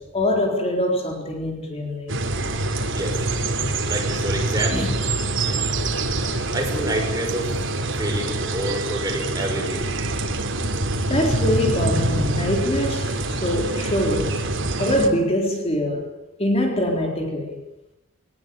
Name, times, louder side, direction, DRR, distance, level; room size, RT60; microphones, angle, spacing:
voice 1, 0.0-2.2 4.7-5.1 11.1-14.5 14.8-17.6, left 1 dB, 30° left, 4.0 m, -24 dB
sound 1, 2.1-15.1, right 2 dB, 70° right, 3.6 m, -25 dB
voice 2, 3.9-4.8 6.5-7.5 7.9-9.9, right 1 dB, 20° right, 6.4 m, -28 dB
22.5 x 20.0 x 8.8 m
head